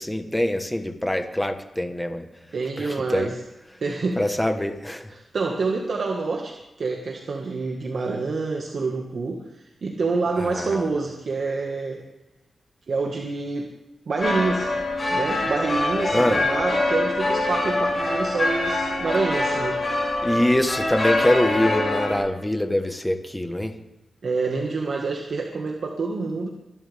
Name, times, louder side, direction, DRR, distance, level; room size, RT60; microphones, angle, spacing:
voice 1, 0.0-2.3 2.8-3.3 4.2-5.1 10.4-10.9 16.1-16.4 20.2-23.7, left 1 dB, 10° left, 7 dB, 1.3 m, -24 dB
voice 2, 2.5-3.4 3.8-4.4 5.1-12.0 12.9-13.7 14.1-14.7 15.1-19.8 24.2-26.5, right 3 dB, 55° right, 1 dB, 1.7 m, -27 dB
sound 1, 14.2-22.2, left 2 dB, 30° left, 6.5 m, -24 dB
24.0 x 12.0 x 3.5 m, 0.96 s
wide cardioid pair, 135°, 0 cm